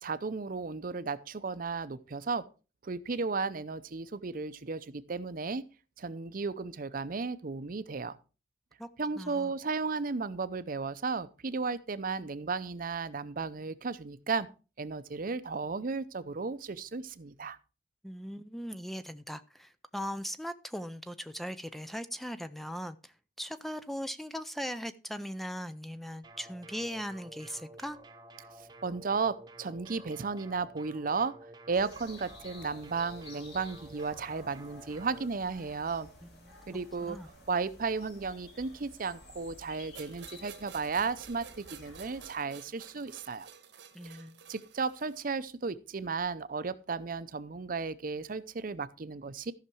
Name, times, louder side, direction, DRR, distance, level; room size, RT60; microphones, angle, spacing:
voice 1, 0.0-2.4 2.8-5.6 6.0-8.2 9.0-14.5 14.8-17.6 28.8-31.3 31.7-36.1 36.7-37.2 37.5-43.5 44.0-44.2 44.5-49.5, right 4 dB, 50° right, 0.6 m, -34 dB
voice 2, 9.2-9.5 18.0-28.0 36.2-36.6 37.0-37.3 43.9-44.4, equal, ahead, 0.4 m, -39 dB
sound 1, 26.2-35.3, right 2 dB, 25° right, 0.9 m, -52 dB
sound 2, 31.7-42.3, left 1 dB, 65° left, 4.3 m, -53 dB
sound 3, 39.9-45.3, right 7 dB, 85° right, 1.3 m, -51 dB
14.0 x 5.9 x 4.5 m
head